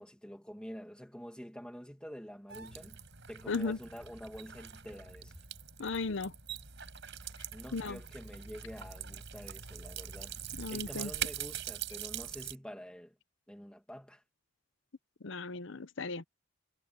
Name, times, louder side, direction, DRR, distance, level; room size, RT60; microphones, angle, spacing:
voice 1, 0.0-3.0 3.3-5.4 7.5-10.4 10.7-13.2 13.5-14.2, equal, 5° left, 2.1 m, -47 dB
sound 1, 2.5-12.6, right 9 dB, 55° right, 5.2 m, -43 dB
voice 2, 3.5-3.8 5.8-6.3 7.7-8.0 10.6-11.1 15.2-16.2, left 3 dB, 60° left, 0.8 m, -35 dB
head